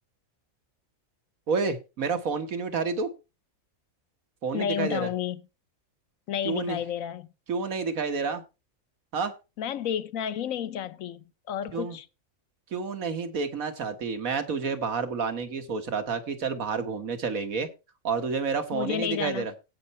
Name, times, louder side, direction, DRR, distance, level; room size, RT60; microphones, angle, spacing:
voice 1, 1.5-3.1 4.4-5.1 6.4-6.8 7.5-8.4 9.1-9.3 11.7-12.0 12.7-17.7 18.0-19.5, right 5 dB, 85° right, 1.9 m, -29 dB
voice 2, 4.5-5.4 6.3-7.3 9.6-12.1 18.7-19.5, left 9 dB, 75° left, 1.2 m, -31 dB
16.5 x 5.6 x 4.2 m
omnidirectional pair, 1.4 m